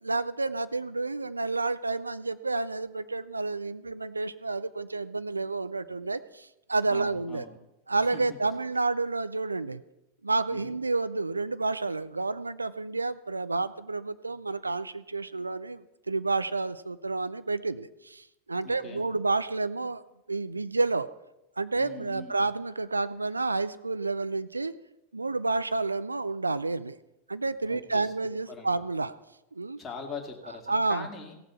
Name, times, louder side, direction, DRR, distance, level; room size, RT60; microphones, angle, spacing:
voice 1, 0.0-7.5 7.9-9.8 10.2-20.0 20.3-21.1 21.6-24.7 25.1-27.0 27.3-29.1 29.5-29.8 30.7-31.1, right 3 dB, 80° right, 14 dB, 0.5 m, -30 dB
voice 2, 6.9-7.6 8.1-8.4 10.5-10.8 18.6-19.0 21.8-22.4 27.7-28.1 28.5-28.7 29.8-31.3, left 5 dB, 15° left, 0 dB, 2.3 m, -42 dB
16.5 x 7.1 x 5.8 m, 0.92 s
figure-of-eight pair, 90°, 0 cm